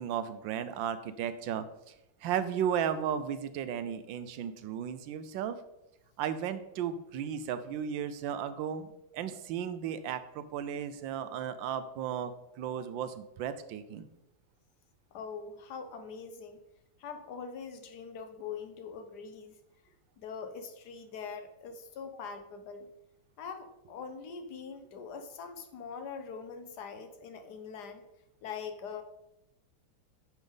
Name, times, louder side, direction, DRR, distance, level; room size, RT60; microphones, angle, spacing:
voice 1, 0.0-1.9 2.2-5.6 6.2-8.9 9.1-14.1, right 8 dB, 85° right, 12 dB, 1.3 m, -35 dB
voice 2, 15.1-16.6 17.0-19.6 20.2-22.9 23.4-28.0 28.4-29.0, left 6 dB, 65° left, 8 dB, 1.2 m, -43 dB
8.9 x 5.3 x 3.9 m, 0.90 s
omnidirectional pair, 2.1 m